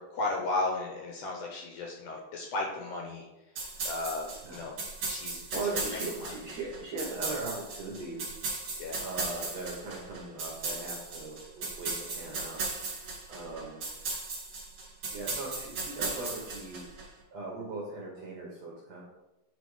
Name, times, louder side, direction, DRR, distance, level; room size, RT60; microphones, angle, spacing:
voice 1, 0.0-3.2 3.9-4.8 5.1-5.6 5.9-6.3 8.8-9.0, left 2 dB, 75° left, 0 dB, 2.0 m, -35 dB
sound 1, 3.6-17.0, right 3 dB, 50° right, 2.4 m, -37 dB
voice 2, 4.4-4.8 5.5-8.3 9.0-12.6 13.3-13.8 15.1-16.9 17.3-19.0, right 3 dB, 65° right, -3 dB, 1.7 m, -39 dB
8.7 x 3.4 x 4.8 m, 0.97 s
omnidirectional pair, 4.4 m